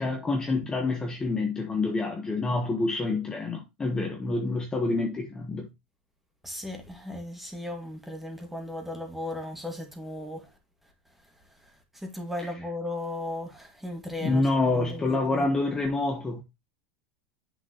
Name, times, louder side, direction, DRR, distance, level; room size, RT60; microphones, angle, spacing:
voice 1, 0.0-5.7 14.2-16.4, left 3 dB, 15° left, 1.1 m, -27 dB
voice 2, 6.4-10.5 11.9-14.5 14.7-15.5, left 1 dB, 5° right, 1.9 m, -36 dB
7.6 x 6.3 x 3.0 m
supercardioid pair, 150°, 6 cm